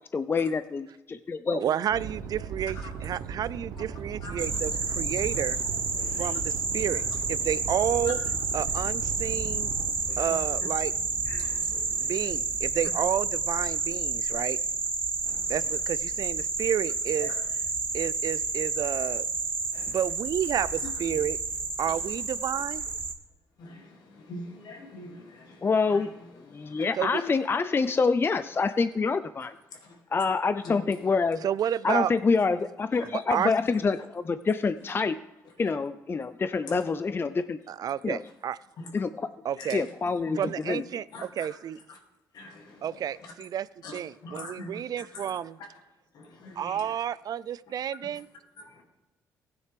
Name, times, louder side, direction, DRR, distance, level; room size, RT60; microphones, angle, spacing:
voice 1, 0.1-1.6 25.6-26.1 26.5-29.6 30.1-31.5 31.8-35.2 35.6-37.6 38.0-38.2 38.9-39.3 39.7-40.8, left 4 dB, 30° left, 13 dB, 0.4 m, -26 dB
voice 2, 1.5-5.6 6.1-7.0 7.3-8.2 8.5-9.7 10.2-10.9 12.0-14.6 15.5-17.3 17.9-19.2 19.9-21.4 21.8-22.9 26.9-27.2 31.4-32.1 33.0-33.5 37.7-38.6 39.4-39.8 40.4-41.8 42.8-45.6 46.6-48.3, right 9 dB, 60° right, 18 dB, 0.4 m, -30 dB
sound 1, 1.9-9.9, right 6 dB, 80° right, 0.9 m, -38 dB
sound 2, 4.4-23.1, right 3 dB, 30° right, 1.5 m, -30 dB
voice 3, 5.9-6.3 8.0-8.1 8.6-8.7 9.9-10.3 11.2-12.3 15.2-15.7 17.2-17.3 19.7-20.0 20.8-21.2 21.8-22.0 23.6-26.1 26.5-26.9 27.8-27.9 29.7-30.0 30.6-31.3 32.9-33.1 36.6-36.8 38.8-38.9 39.6-39.9 40.3-40.4 41.1-41.5 41.9-42.0 42.3-43.3 43.8-45.4 46.1-47.0 48.6-48.8, left 2 dB, 70° left, 1 dB, 2.3 m, -44 dB
16.0 x 9.6 x 3.3 m, 0.99 s
supercardioid pair, 65°, 7 cm